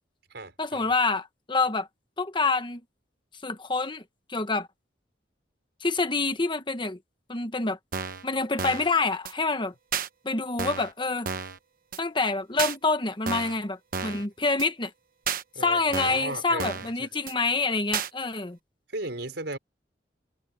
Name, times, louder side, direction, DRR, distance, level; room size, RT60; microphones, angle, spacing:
voice 1, 0.6-1.9 2.2-2.8 3.4-4.0 4.3-4.7 5.8-7.0 7.3-7.8 8.2-9.7 10.2-11.3 12.0-14.9 15.6-18.6, left 3 dB, 25° left, 1.3 m, -27 dB
sound 1, 7.9-8.3 8.6-8.9 9.3-9.4 9.9-10.1 10.6-10.9 11.3-11.6 11.9-12.0 12.6-12.8 13.3-13.6 13.9-14.3 14.6-14.7 15.3-15.4 15.9-16.3 16.6-16.9 17.3-17.4 17.9-18.1, right 6 dB, 50° right, 1.0 m, -31 dB
voice 2, 15.5-16.7 17.0-17.1 18.9-19.6, right 2 dB, 75° right, 5.0 m, -35 dB
head